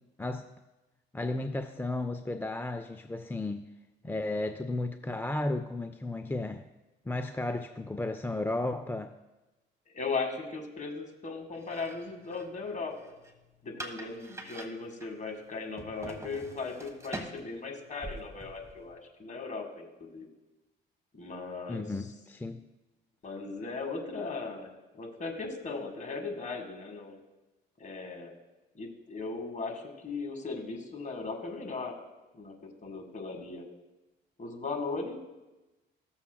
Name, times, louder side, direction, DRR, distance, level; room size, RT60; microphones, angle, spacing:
voice 1, 0.2-0.5 1.1-3.6 4.0-6.6 7.1-9.2 21.7-22.6, left 2 dB, 10° left, 0.4 m, -34 dB
voice 2, 9.9-13.2 13.6-20.3 21.1-21.8 23.2-24.7 24.9-27.2 27.8-28.3 28.8-32.0 32.3-32.6 32.8-33.7 34.4-35.2, left 4 dB, 35° left, 1.9 m, -37 dB
sound 1, 11.5-18.9, right 1 dB, 15° right, 1.5 m, -46 dB
15.5 x 7.0 x 2.3 m
supercardioid pair, 70°, 21 cm